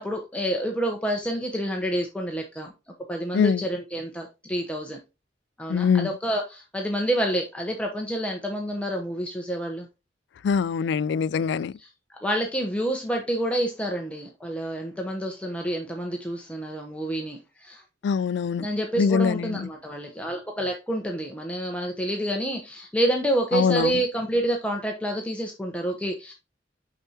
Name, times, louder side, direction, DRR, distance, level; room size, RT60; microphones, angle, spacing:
voice 1, 0.0-2.7 3.1-5.0 5.6-9.9 11.4-11.5 11.8-17.8 18.6-26.3, right 1 dB, 5° left, 0.9 m, -28 dB
voice 2, 5.7-6.1 10.4-11.7 18.0-18.7 19.0-19.7 23.5-23.9, left 6 dB, 65° left, 0.3 m, -23 dB
6.8 x 5.7 x 2.8 m
head